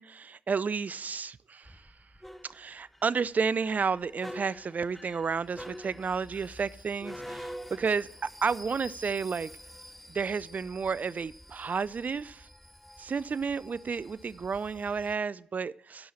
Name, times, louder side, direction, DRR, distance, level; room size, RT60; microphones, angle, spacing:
voice 1, 0.0-1.9 2.4-9.5 10.1-12.5 13.0-16.1, right 5 dB, 40° right, 20 dB, 0.4 m, -31 dB
sound 1, 1.6-15.2, equal, 5° left, 0.7 m, -47 dB
10.5 x 5.5 x 7.0 m, 0.69 s
hypercardioid pair, 45°, 4 cm